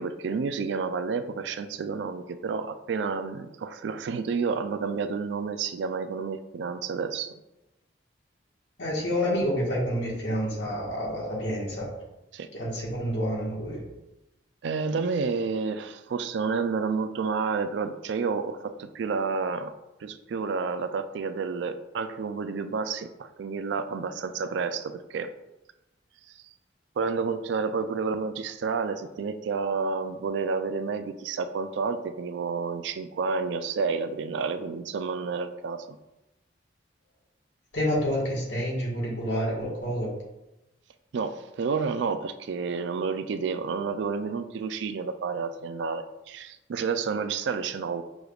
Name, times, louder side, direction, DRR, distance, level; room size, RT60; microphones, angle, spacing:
voice 1, 0.0-7.3 12.3-12.5 14.6-19.7 20.0-25.3 27.0-36.0 41.1-48.0, right 5 dB, 70° right, 10 dB, 0.3 m, -30 dB
voice 2, 8.8-11.9 12.5-13.8 37.7-40.1, equal, 75° left, -3 dB, 1.4 m, -28 dB
6.2 x 3.3 x 2.3 m, 0.96 s
head